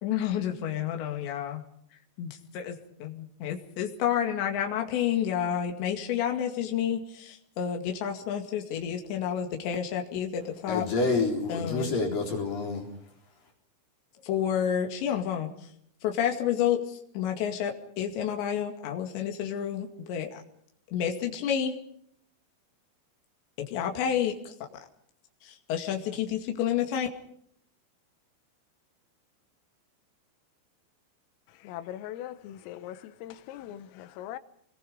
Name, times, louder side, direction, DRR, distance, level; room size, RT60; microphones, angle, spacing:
voice 1, 0.0-1.6 2.2-2.8 3.0-10.8 11.5-11.9 14.2-15.5 16.0-20.4 20.9-21.8 23.7-24.8 25.4-27.1, left 9 dB, 65° left, 4.3 m, -30 dB
voice 2, 10.7-12.9, left 3 dB, 45° left, 5.4 m, -28 dB
voice 3, 31.6-34.4, left 12 dB, 80° left, 3.6 m, -40 dB
28.5 x 22.5 x 5.1 m
omnidirectional pair, 6.0 m